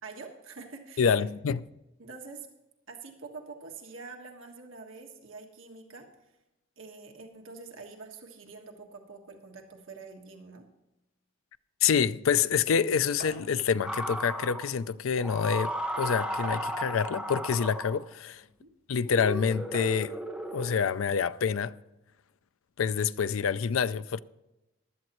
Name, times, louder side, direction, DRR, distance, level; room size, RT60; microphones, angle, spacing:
voice 1, 0.0-1.2 2.0-2.5 2.9-6.3 6.8-10.6 18.6-18.7, right 4 dB, 70° right, 1.5 m, -46 dB
voice 2, 1.0-1.6 11.8-18.4 18.9-20.2 20.5-21.7 22.8-24.2, left 6 dB, 75° left, 0.4 m, -27 dB
sound 1, 13.2-13.5 14.6-14.7 15.1-15.2 16.4-17.1 17.9-18.0 19.7-20.1, right 2 dB, 45° right, 4.6 m, -43 dB
sound 2, 13.8-14.7 15.2-18.1 19.0-20.7, equal, 5° right, 1.3 m, -35 dB
15.5 x 11.5 x 3.0 m
head